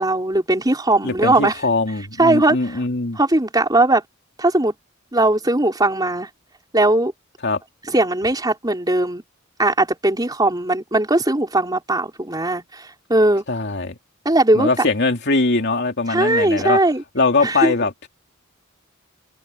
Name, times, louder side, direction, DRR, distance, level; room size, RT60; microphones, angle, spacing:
voice 1, 0.0-1.6 2.2-2.6 3.2-4.0 4.4-4.7 5.1-6.3 6.7-7.1 7.9-9.2 9.6-13.4 14.2-14.9 16.1-17.0 17.4-17.7, right 2 dB, 20° right, 4.3 m, -19 dB
voice 2, 1.0-3.2 7.4-7.6 13.5-14.0 14.5-16.8 17.1-18.1, left 3 dB, 55° left, 2.7 m, -21 dB
head